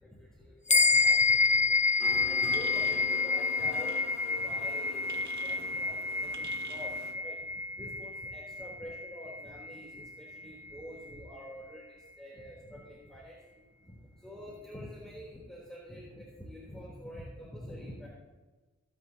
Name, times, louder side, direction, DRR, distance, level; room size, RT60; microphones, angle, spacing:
voice 1, 0.0-18.1, equal, ahead, -5 dB, 3.8 m, -47 dB
sound 1, 0.7-10.4, left 4 dB, 25° left, 0.6 m, -29 dB
sound 2, 2.0-7.1, left 3 dB, 65° left, 2.1 m, -45 dB
sound 3, 2.5-3.1 3.8-4.0 5.1-5.6 6.3-6.9, right 5 dB, 75° right, 1.4 m, -49 dB
26.0 x 9.7 x 3.0 m, 1.3 s
wide cardioid pair, 75°, 29 cm